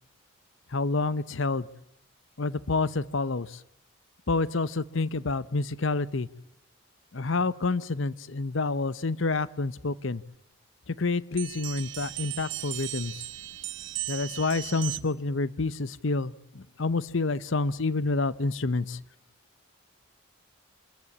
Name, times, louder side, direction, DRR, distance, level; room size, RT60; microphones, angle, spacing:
voice 1, 0.7-1.7 2.4-3.6 4.3-6.3 7.1-10.2 10.9-13.1 14.1-19.0, left 3 dB, 65° left, 18 dB, 0.8 m, -28 dB
sound 1, 11.4-15.3, right 15 dB, 60° right, 0.9 m, -37 dB
27.0 x 14.5 x 9.7 m, 0.77 s
head